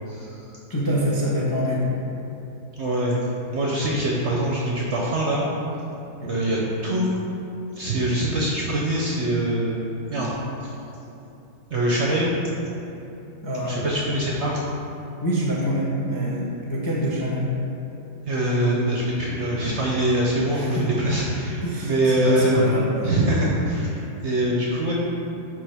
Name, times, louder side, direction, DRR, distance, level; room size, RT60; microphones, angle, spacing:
voice 1, 0.1-0.6 2.8-3.2 3.5-5.5 6.3-7.1 7.7-9.8 10.1-10.3 10.6-10.7 11.7-12.3 13.6-14.6 18.2-22.6 23.0-24.9, right 1 dB, 55° right, -4 dB, 0.8 m, -23 dB
voice 2, 0.7-1.9 6.2-6.4 13.4-13.9 15.2-17.5 20.5-20.9 21.6-23.1, equal, 20° left, -5 dB, 0.5 m, -25 dB
9.8 x 3.5 x 3.4 m, 2.9 s
omnidirectional pair, 1.8 m